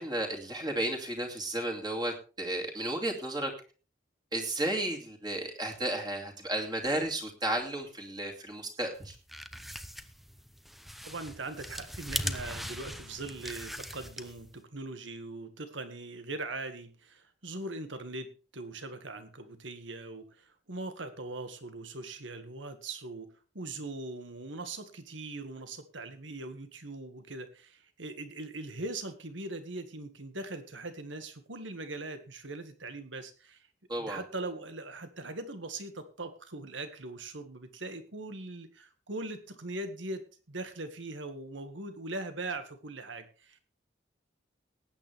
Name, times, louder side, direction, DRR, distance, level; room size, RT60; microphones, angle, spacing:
voice 1, 0.0-3.5 4.3-9.2 33.9-34.2, right 1 dB, 20° right, 2 dB, 2.6 m, -33 dB
sound 1, 9.0-14.6, equal, ahead, 0.7 m, -40 dB
voice 2, 11.0-33.7 34.0-40.2 40.5-43.6, right 2 dB, 80° right, 9 dB, 1.9 m, -41 dB
19.0 x 8.9 x 3.5 m, 0.35 s
head